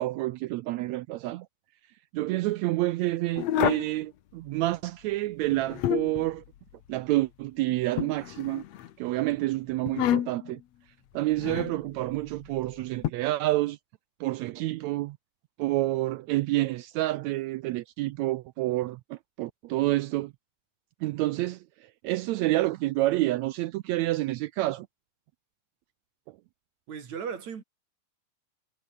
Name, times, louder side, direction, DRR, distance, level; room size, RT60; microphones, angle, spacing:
voice 1, 0.0-1.5 2.1-6.4 6.9-8.6 9.0-10.6 11.1-13.8 14.2-15.2 15.6-20.3 21.0-24.9, right 17 dB, 85° right, 1.6 m, -28 dB
sound 1, 3.4-3.9 5.4-6.3 8.0-8.9 9.9-10.5 11.4-11.8 13.0-13.1, left 12 dB, 60° left, 2.2 m, -28 dB
voice 2, 26.9-27.6, right 7 dB, 60° right, 3.8 m, -36 dB
omnidirectional pair, 3.7 m